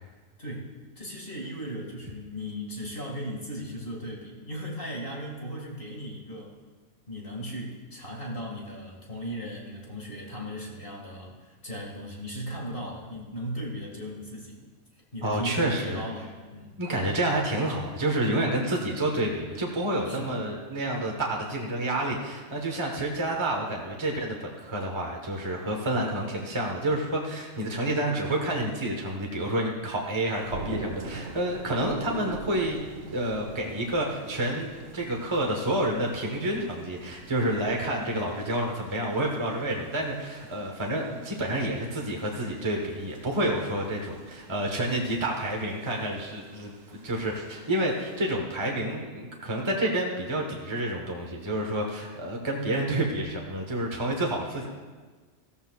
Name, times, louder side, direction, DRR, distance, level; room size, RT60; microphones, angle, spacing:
voice 1, 1.0-6.5 7.1-14.6 15.1-16.8 20.1-20.4, equal, 45° left, -2 dB, 2.2 m, -37 dB
voice 2, 15.2-16.0 16.8-32.8 33.1-54.7, right 1 dB, 25° right, 0 dB, 1.3 m, -29 dB
sound 1, 30.3-48.2, right 3 dB, 85° right, 1.4 m, -44 dB
15.0 x 14.5 x 2.4 m, 1.4 s
omnidirectional pair, 1.3 m